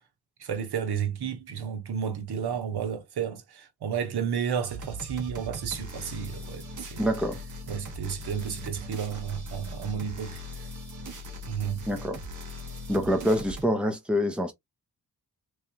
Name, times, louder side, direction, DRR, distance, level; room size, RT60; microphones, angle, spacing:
voice 1, 0.4-7.1 7.7-10.7 11.5-11.8, right 7 dB, 85° right, 1.0 m, -32 dB
sound 1, 4.7-13.7, equal, 50° right, 1.2 m, -40 dB
voice 2, 7.0-7.4 11.9-12.2 12.9-14.5, equal, 5° right, 0.9 m, -26 dB
3.5 x 3.3 x 2.8 m
wide cardioid pair, 120°, 38 cm